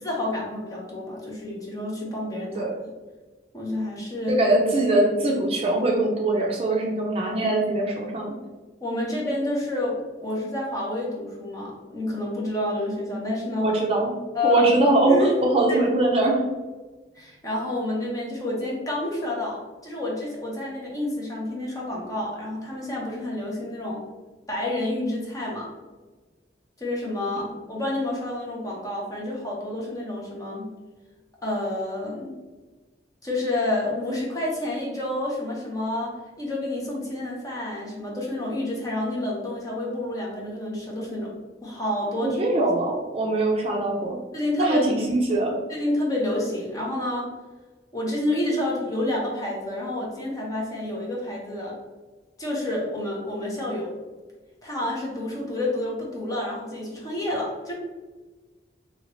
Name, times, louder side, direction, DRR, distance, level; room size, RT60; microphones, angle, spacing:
voice 1, 0.0-2.7 3.5-4.4 8.8-13.7 14.3-14.7 15.1-15.3 15.7-15.8 17.1-24.0 24.5-25.7 26.8-30.7 31.4-32.4 33.2-41.3 41.6-42.4 44.3-44.9 45.7-47.3 47.9-51.8 52.4-53.9 54.6-57.7, left 1 dB, 20° left, -3 dB, 0.8 m, -29 dB
voice 2, 4.3-8.3 13.6-14.1 14.4-16.5 42.2-44.2 44.6-45.6, right 2 dB, 35° right, -1 dB, 0.5 m, -22 dB
2.8 x 2.8 x 3.0 m, 1.3 s
head